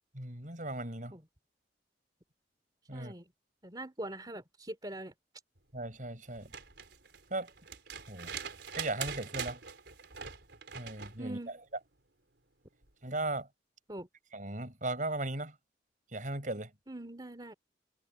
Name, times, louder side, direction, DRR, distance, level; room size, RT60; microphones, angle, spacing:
voice 1, 0.1-1.2 2.9-3.1 5.7-6.5 7.3-7.5 8.1-8.3 8.7-9.6 10.7-11.4 13.0-13.5 14.3-15.6 16.1-16.7, right 2 dB, 45° right, 7.5 m, -37 dB
voice 2, 2.9-3.3 3.6-5.1 11.2-11.5 13.9-14.1 16.9-17.5, right 1 dB, 20° right, 3.0 m, -42 dB
sound 1, 6.3-11.2 12.8-12.9, right 7 dB, 70° right, 3.9 m, -43 dB
head